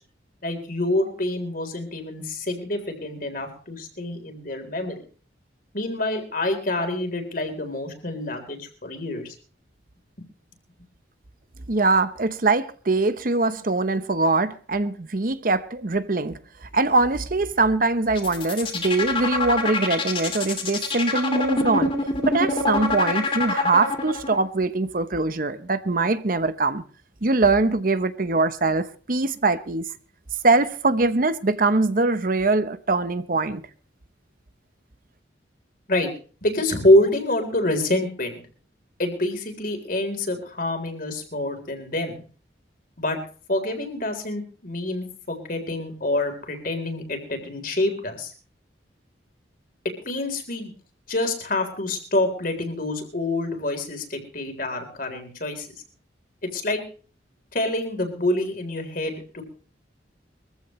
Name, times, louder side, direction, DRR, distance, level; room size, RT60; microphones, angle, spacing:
voice 1, 0.4-5.0 5.7-9.4 35.9-36.1 36.4-38.4 39.0-42.2 43.0-43.2 43.5-48.3 50.0-50.7 51.1-55.7 56.4-56.8 57.5-59.4, left 1 dB, 50° left, 3.8 m, -26 dB
voice 2, 11.7-21.9 22.2-26.8 27.2-29.8 30.4-33.6, right 3 dB, 50° right, 0.9 m, -22 dB
sound 1, 18.1-24.4, left 3 dB, 30° left, 2.7 m, -25 dB
23.0 x 15.0 x 3.2 m
head